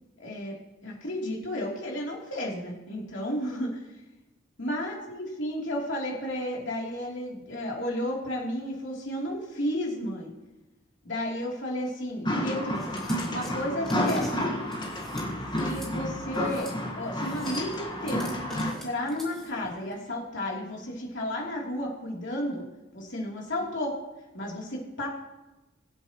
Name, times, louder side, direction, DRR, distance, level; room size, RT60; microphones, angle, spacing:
voice 1, 0.2-3.8 4.6-10.3 11.0-12.8 13.3-14.5 15.6-16.7 17.0-22.6 22.9-23.9 24.3-25.1, left 1 dB, 70° left, -2 dB, 3.1 m, -33 dB
sound 1, 12.2-18.7, left 1 dB, 20° left, 1.4 m, -30 dB
sound 2, 12.7-15.9 16.3-16.8 17.0-19.7, left 1 dB, ahead, 2.3 m, -42 dB
22.0 x 8.1 x 3.0 m, 1.1 s
head